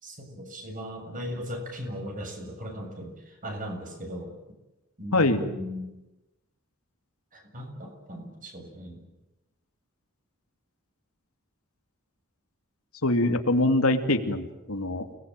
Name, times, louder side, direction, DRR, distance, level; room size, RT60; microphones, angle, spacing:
voice 1, 0.0-4.4 5.0-5.9 7.3-9.1, equal, 40° right, 4 dB, 7.1 m, -38 dB
voice 2, 5.1-5.4 13.0-15.1, left 2 dB, 75° left, 6 dB, 2.6 m, -23 dB
29.5 x 20.5 x 9.1 m, 0.99 s
head